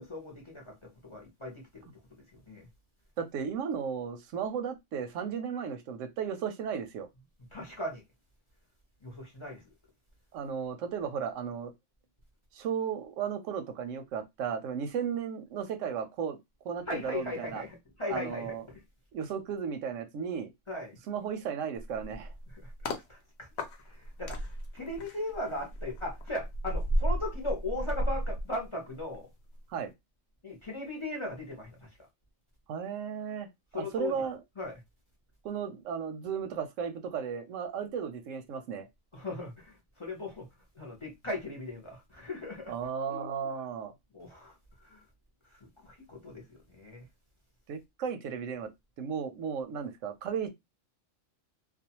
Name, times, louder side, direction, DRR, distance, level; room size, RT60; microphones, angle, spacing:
voice 1, 0.0-1.9 2.3-2.7 7.5-8.0 9.0-9.6 16.9-18.8 20.7-21.0 22.5-23.5 23.8-29.3 30.4-31.9 33.7-34.2 34.6-34.8 39.1-40.5 40.7-42.7 43.1-43.3 44.1-45.0 45.5-47.0, left 2 dB, 30° left, 0.6 m, -38 dB
voice 2, 3.2-7.1 10.3-11.7 12.5-16.4 16.6-17.6 18.1-18.6 19.1-20.5 21.1-22.3 29.7-29.9 32.7-34.4 35.4-38.9 42.7-43.9 47.7-48.7 49.0-50.5, right 7 dB, 85° right, 1.0 m, -35 dB
sound 1, 21.8-23.1 23.6-29.2 29.5-29.7, equal, 65° left, 0.8 m, -34 dB
2.4 x 2.3 x 2.8 m
omnidirectional pair, 1.3 m